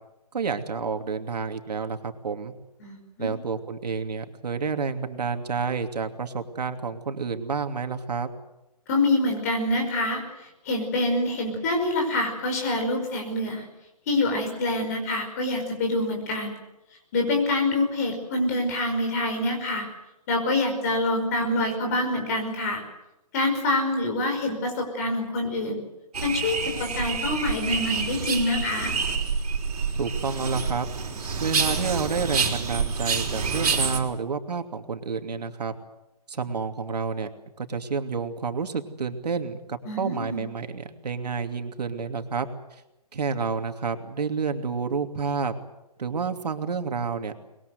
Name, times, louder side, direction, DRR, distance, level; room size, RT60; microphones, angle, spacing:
voice 1, 0.3-2.5 3.2-8.3 29.9-30.9 31.4-35.7 36.3-37.3 37.6-42.8 43.1-45.5 46.0-47.3, right 5 dB, 80° right, 6 dB, 2.8 m, -29 dB
voice 2, 2.8-3.3 8.9-13.7 14.1-16.6 17.1-19.9 20.3-22.8 23.3-25.8 26.2-28.9 39.9-40.4, left 2 dB, 25° left, 3 dB, 5.3 m, -26 dB
sound 1, 26.1-34.0, right 5 dB, 65° right, 5.2 m, -27 dB
25.0 x 21.5 x 8.1 m, 0.93 s
hypercardioid pair, 180°, 21 cm